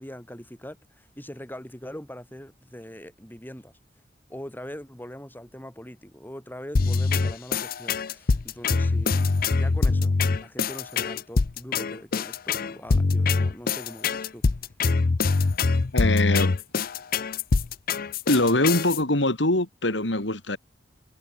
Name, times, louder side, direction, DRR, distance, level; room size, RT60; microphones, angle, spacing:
voice 1, 0.0-3.7 4.3-10.1 10.4-14.5, equal, 10° left, 7.3 m, -42 dB
sound 1, 6.7-19.0, left 4 dB, 55° left, 0.6 m, -24 dB
voice 2, 15.9-16.6 18.3-20.6, left 1 dB, 75° left, 4.0 m, -23 dB
head